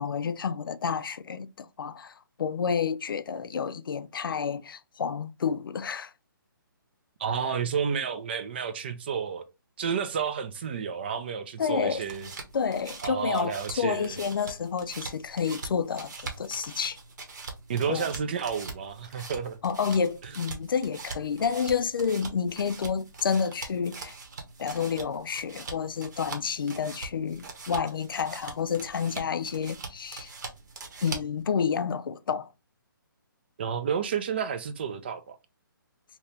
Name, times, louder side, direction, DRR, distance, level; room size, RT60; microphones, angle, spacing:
voice 1, 0.0-6.1 11.6-12.0 12.5-17.0 17.9-18.1 19.2-19.3 19.6-24.1 24.6-30.3 31.0-32.5, left 6 dB, 75° left, 0.4 m, -29 dB
voice 2, 7.2-9.5 9.8-12.3 13.0-14.2 17.7-19.6 20.2-20.3 33.6-35.4, right 7 dB, 30° right, 0.4 m, -31 dB
sound 1, 11.8-31.4, right 4 dB, 55° right, 1.0 m, -42 dB
2.9 x 2.8 x 3.2 m
hypercardioid pair, 165°, 12 cm